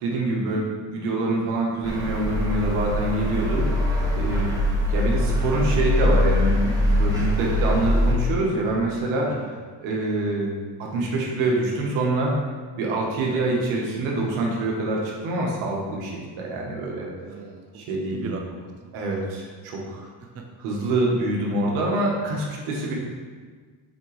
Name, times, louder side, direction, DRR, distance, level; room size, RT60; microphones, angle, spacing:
voice 1, 0.0-3.7 4.1-4.6 4.9-9.4 9.8-10.5 10.8-12.4 12.8-17.1 17.7-18.3 18.9-20.1 20.6-22.9, right 2 dB, 80° right, -2 dB, 1.6 m, -25 dB
sound 1, 1.8-8.2, left 1 dB, 5° right, 1.6 m, -22 dB
voice 2, 17.2-17.9 18.1-18.9 19.4-19.5 20.3-20.4, right 4 dB, 30° right, 2 dB, 0.8 m, -39 dB
8.1 x 3.7 x 3.4 m, 1.5 s
supercardioid pair, 85°, 49 cm